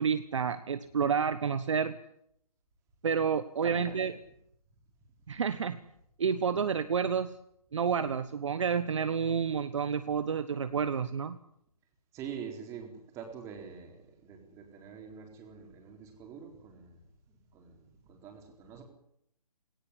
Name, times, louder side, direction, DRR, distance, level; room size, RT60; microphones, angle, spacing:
voice 1, 0.0-2.0 3.0-4.1 5.3-5.8 6.2-7.3 7.7-11.4, right 6 dB, 50° right, 12 dB, 1.3 m, -29 dB
voice 2, 3.6-4.0 12.1-17.0 17.3-18.8, right 7 dB, 15° right, 3 dB, 4.1 m, -45 dB
18.5 x 18.5 x 9.9 m, 0.74 s
figure-of-eight pair, 145°, 20 cm